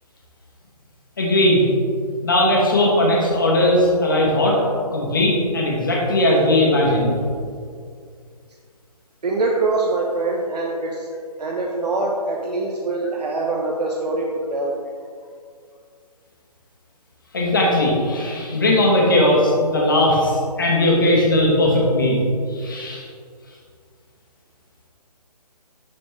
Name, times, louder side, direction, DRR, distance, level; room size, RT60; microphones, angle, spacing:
voice 1, 1.2-1.6 2.2-4.6 4.9-7.2 17.3-22.2 22.5-23.1, left 1 dB, 30° left, -2 dB, 1.2 m, -18 dB
voice 2, 9.2-11.1 11.4-14.7, right 2 dB, 80° right, -1 dB, 1.0 m, -23 dB
11.5 x 4.2 x 3.2 m, 2.2 s
hypercardioid pair, 180°, 20 cm